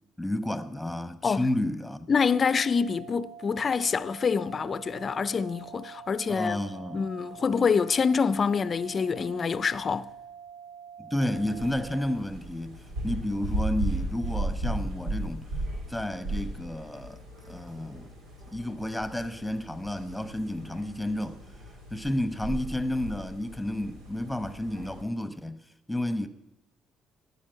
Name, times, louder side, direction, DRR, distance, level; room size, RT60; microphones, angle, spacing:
voice 1, 0.2-2.1 6.3-7.1 11.0-15.5 15.9-18.1 18.5-21.4 21.9-25.6 25.9-26.3, left 1 dB, 5° left, 1.1 m, -31 dB
voice 2, 2.1-6.6 6.9-10.1, left 5 dB, 40° left, 0.6 m, -26 dB
sound 1, 2.1-12.1, right 7 dB, 50° right, 2.7 m, -46 dB
scratch door, 11.4-25.0, right 1 dB, 90° right, 2.9 m, -36 dB
14.0 x 10.0 x 6.9 m
cardioid pair, 85°, 0 cm